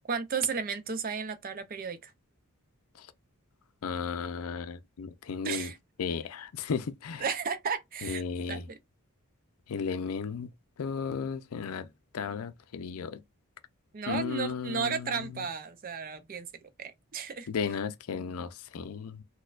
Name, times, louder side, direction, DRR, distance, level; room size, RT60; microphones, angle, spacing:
voice 1, 0.1-2.1 5.4-5.8 7.2-8.2 8.5-8.8 13.9-17.5, right 6 dB, 40° right, 0.5 m, -34 dB
voice 2, 3.8-5.7 6.0-7.2 8.0-8.6 9.7-10.5 10.8-11.9 12.1-13.2 14.1-15.4 17.5-19.2, left 6 dB, 75° left, 0.4 m, -34 dB
4.2 x 2.2 x 2.4 m
head